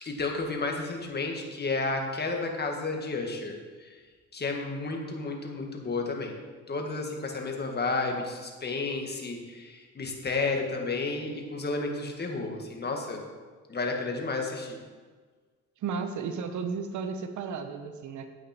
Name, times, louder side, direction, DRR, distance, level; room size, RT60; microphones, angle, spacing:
voice 1, 0.0-4.0 4.3-6.3 6.7-13.2 13.7-14.8, left 3 dB, 35° left, 2 dB, 1.8 m, -32 dB
voice 2, 15.8-18.3, right 5 dB, 75° right, 7 dB, 1.0 m, -33 dB
9.5 x 8.5 x 4.4 m, 1.5 s
cardioid pair, 90°, 30 cm